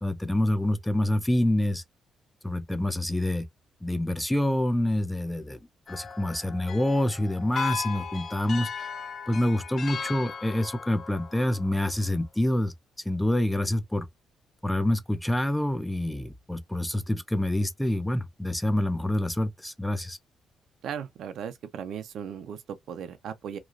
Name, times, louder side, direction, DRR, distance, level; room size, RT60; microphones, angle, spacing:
voice 1, 0.0-1.8 2.4-3.5 3.8-5.6 5.9-8.9 9.3-12.7 13.1-14.1 14.6-20.2, left 1 dB, 5° left, 0.5 m, -27 dB
sound 1, 5.9-12.1, left 6 dB, 50° left, 0.6 m, -37 dB
voice 2, 20.8-23.6, right 8 dB, 70° right, 0.5 m, -37 dB
3.0 x 2.4 x 2.4 m
cardioid pair, 90°, 0 cm